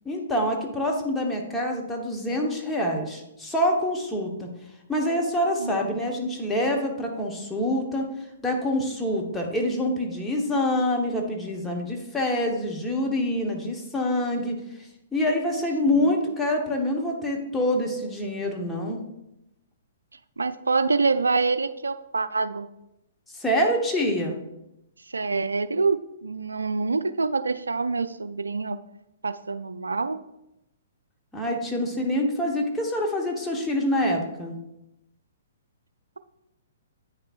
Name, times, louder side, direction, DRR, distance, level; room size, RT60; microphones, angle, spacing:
voice 1, 0.0-4.5 4.9-8.1 8.4-14.6 15.1-19.0 23.3-24.4 31.3-34.5, left 1 dB, 10° left, 0 dB, 1.1 m, -26 dB
voice 2, 5.6-5.9 15.9-16.1 20.4-22.7 25.1-28.8 29.2-30.2, right 4 dB, 80° right, 13 dB, 0.4 m, -26 dB
8.7 x 6.6 x 2.5 m, 0.88 s
figure-of-eight pair, 120°, 0 cm